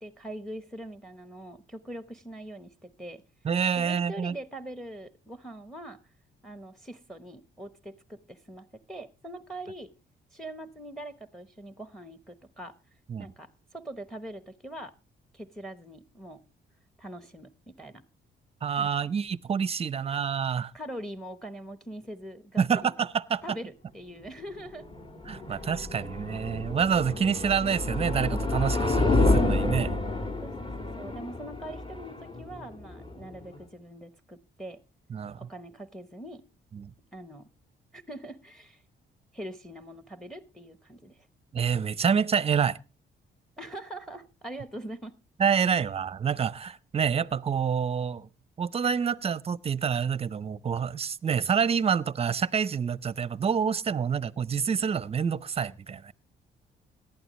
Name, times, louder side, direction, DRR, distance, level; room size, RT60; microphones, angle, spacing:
voice 1, 0.0-3.2 3.8-6.0 6.4-9.9 10.3-12.8 13.2-15.0 15.3-16.4 17.0-18.0 18.8-18.9 20.7-22.9 23.4-24.9 25.5-25.6 30.4-34.8 35.4-36.4 37.1-37.5 37.9-38.8 39.3-41.3 43.6-45.1, right 1 dB, ahead, 0.9 m, -42 dB
voice 2, 3.4-4.3 13.1-13.3 18.6-20.7 22.6-23.4 25.3-30.0 35.1-35.5 36.7-36.9 41.5-42.8 45.4-48.3 48.6-56.1, right 7 dB, 30° right, 0.6 m, -27 dB
sound 1, 24.6-33.6, left 2 dB, 25° left, 1.6 m, -29 dB
17.5 x 11.5 x 3.0 m
cardioid pair, 90°, 20 cm